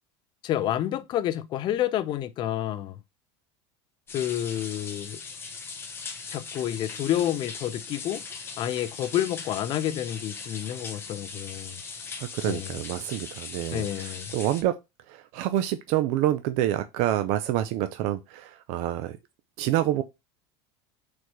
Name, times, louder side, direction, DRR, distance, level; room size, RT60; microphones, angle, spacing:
voice 1, 0.4-3.0 4.1-5.2 6.3-8.2 8.6-11.8 12.4-12.8 13.7-14.3, left 12 dB, 35° left, 0.5 m, -29 dB
sound 1, 4.1-14.6, left 4 dB, 15° left, 0.9 m, -40 dB
voice 2, 12.2-14.7 15.1-19.2 19.6-20.0, right 13 dB, 50° right, 0.6 m, -27 dB
4.6 x 4.3 x 4.7 m
cardioid pair, 160°, 14 cm